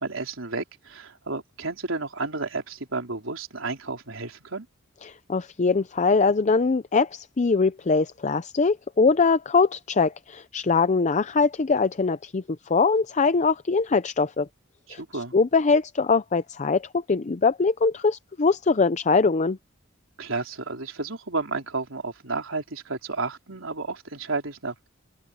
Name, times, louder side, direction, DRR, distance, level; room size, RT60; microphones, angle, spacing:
voice 1, 0.0-4.7 14.9-15.3 20.2-24.9, right 3 dB, 90° right, 3.6 m, -32 dB
voice 2, 5.0-14.5 14.9-19.6, left 4 dB, 35° left, 0.5 m, -22 dB
open air
head